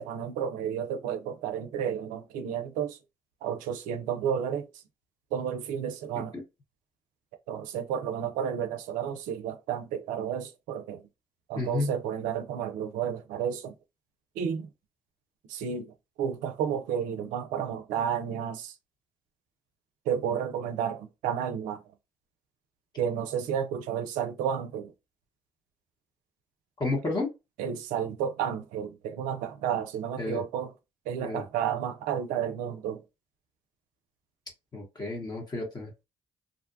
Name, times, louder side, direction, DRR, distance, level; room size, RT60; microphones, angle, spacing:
voice 1, 0.0-3.0 3.4-4.6 5.3-6.3 7.5-11.0 11.5-13.7 14.4-14.7 15.5-18.7 20.1-21.8 23.0-24.9 27.6-30.7 31.1-33.0, right 8 dB, 80° right, 0.4 m, -31 dB
voice 2, 11.6-11.9 26.8-27.3 30.2-30.4 31.2-31.4 34.7-36.0, left 2 dB, 30° left, 1.1 m, -31 dB
2.5 x 2.1 x 2.5 m
hypercardioid pair, 50°, 13 cm